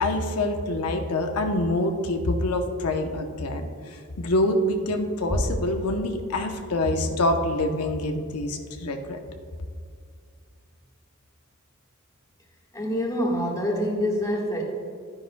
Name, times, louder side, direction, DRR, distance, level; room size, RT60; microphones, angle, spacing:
voice 1, 0.0-9.2, left 1 dB, 90° left, 4 dB, 0.8 m, -26 dB
voice 2, 12.7-14.6, equal, 15° left, -2 dB, 1.4 m, -26 dB
12.0 x 9.8 x 2.2 m, 2.2 s
head